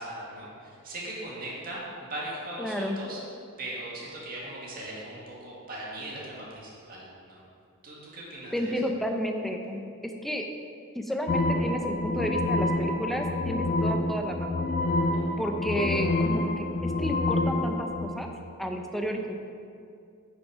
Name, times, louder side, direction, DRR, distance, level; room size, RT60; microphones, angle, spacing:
voice 1, 0.0-3.2 3.6-7.4 7.8-8.7 15.1-15.4, right 1 dB, 45° right, -5 dB, 2.0 m, -39 dB
voice 2, 2.6-3.0 8.5-10.5 10.9-14.7 15.4-18.3 18.6-19.3, equal, ahead, 3 dB, 0.6 m, -31 dB
sound 1, 11.3-18.1, left 2 dB, 40° left, 0.5 m, -27 dB
8.9 x 6.2 x 4.9 m, 2.4 s
head